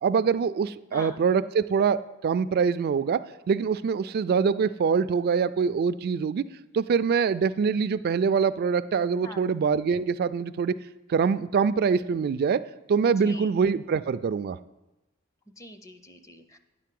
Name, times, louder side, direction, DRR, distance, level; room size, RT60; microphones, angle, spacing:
voice 1, 0.0-3.2 3.5-6.5 6.7-10.8 11.1-12.6 12.9-14.6, right 6 dB, 50° right, 14 dB, 0.3 m, -24 dB
voice 2, 13.2-13.5 15.6-16.6, left 1 dB, 15° left, 8 dB, 0.6 m, -44 dB
9.5 x 4.6 x 7.6 m, 1.0 s
head